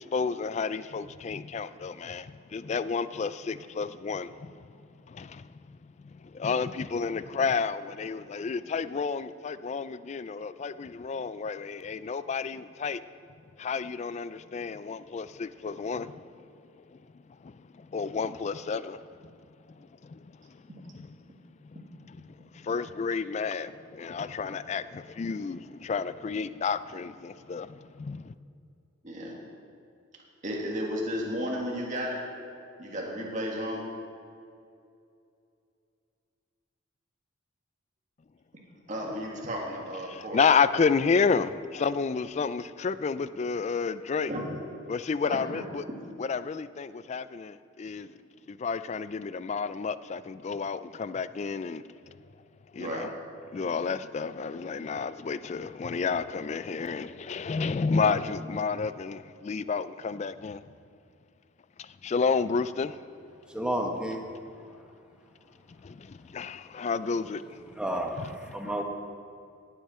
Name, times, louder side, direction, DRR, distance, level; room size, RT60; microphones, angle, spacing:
voice 1, 0.0-4.7 5.1-5.8 6.0-13.0 13.6-16.5 16.9-19.4 19.8-21.1 21.6-28.3 40.1-44.3 44.9-45.8 46.2-48.1 48.5-52.1 52.7-53.1 53.5-60.6 61.8-63.0 65.8-67.6 68.2-68.3, left 5 dB, 35° left, 0.3 m, -31 dB
voice 2, 29.0-29.4 30.4-32.2 32.8-33.9 38.9-40.4 44.3-44.5 45.2-45.7 52.8-53.1, equal, 40° right, 1.9 m, -33 dB
voice 3, 63.5-64.3 64.6-64.7 67.7-68.8, right 1 dB, 5° right, 1.0 m, -31 dB
17.5 x 8.3 x 4.3 m
head